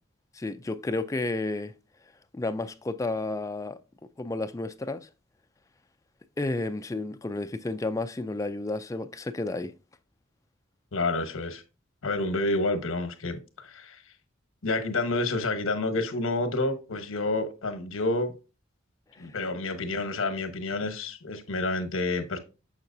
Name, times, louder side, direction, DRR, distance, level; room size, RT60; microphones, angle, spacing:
voice 1, 0.3-1.7 2.3-3.8 4.2-5.1 6.4-9.7 19.2-19.3, left 2 dB, 15° left, 0.3 m, -31 dB
voice 2, 10.9-11.6 12.0-14.0 14.6-18.3 19.2-22.4, left 2 dB, 75° left, 1.0 m, -29 dB
6.6 x 6.0 x 2.6 m
head